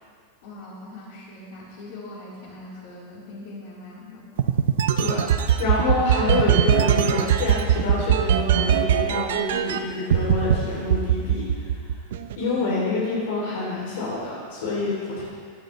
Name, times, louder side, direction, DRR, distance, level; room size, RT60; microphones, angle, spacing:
voice 1, 0.4-4.3 12.4-12.8, left 2 dB, 50° left, -6 dB, 4.0 m, -41 dB
sound 1, 4.4-9.8 10.1-10.6 10.9-12.4, right 9 dB, 80° right, 0.8 m, -20 dB
voice 2, 5.0-11.8 12.4-15.2, left 3 dB, 70° left, -5 dB, 3.1 m, -27 dB
17.0 x 12.0 x 3.3 m, 2.1 s
supercardioid pair, 170°, 0 cm